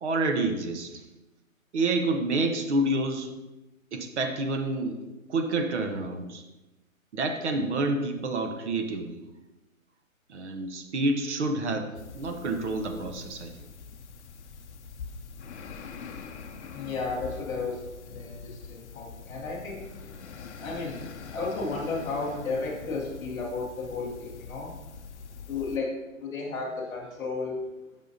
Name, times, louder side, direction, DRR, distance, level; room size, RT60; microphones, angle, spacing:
voice 1, 0.0-1.0 1.7-3.3 3.9-6.4 7.1-9.2 10.3-13.5, right 2 dB, 55° right, 5 dB, 1.0 m, -28 dB
sound 1, 11.9-25.8, left 5 dB, 55° left, 0.6 m, -44 dB
voice 2, 16.7-19.8 20.6-24.7 25.5-27.6, left 3 dB, 10° left, -7 dB, 0.9 m, -33 dB
8.6 x 5.5 x 2.7 m, 1.0 s
hypercardioid pair, 150°, 42 cm